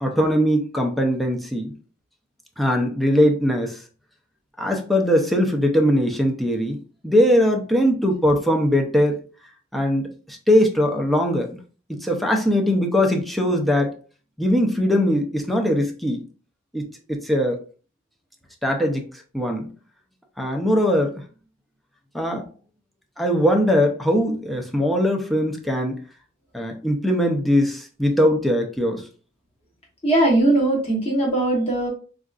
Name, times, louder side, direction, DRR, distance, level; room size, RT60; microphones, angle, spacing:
voice 1, 0.0-1.7 2.6-3.8 4.6-6.8 7.0-9.2 9.7-11.5 11.9-13.9 14.4-16.2 16.7-17.6 18.6-19.1 19.3-19.7 20.4-21.1 22.1-22.5 23.2-26.0 26.5-29.1, equal, ahead, 1 dB, 0.5 m, -20 dB
voice 2, 30.0-31.9, right 2 dB, 30° left, -2 dB, 1.1 m, -19 dB
3.8 x 2.4 x 2.4 m, 0.38 s
head